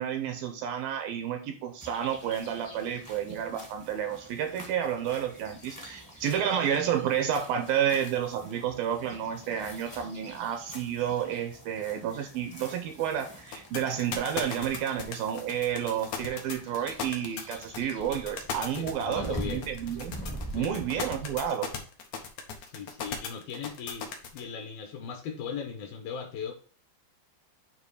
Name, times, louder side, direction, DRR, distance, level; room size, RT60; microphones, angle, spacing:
voice 1, 0.0-20.2 20.5-21.7, right 9 dB, 75° right, 7 dB, 2.3 m, -30 dB
sound 1, 1.8-21.5, equal, 20° left, 0.4 m, -45 dB
sound 2, 13.5-24.4, left 6 dB, 85° left, 1.4 m, -36 dB
voice 2, 18.8-19.7 20.5-20.8 22.6-26.5, left 6 dB, 70° left, 4 dB, 2.6 m, -38 dB
9.1 x 3.2 x 4.7 m, 0.42 s
omnidirectional pair, 4.8 m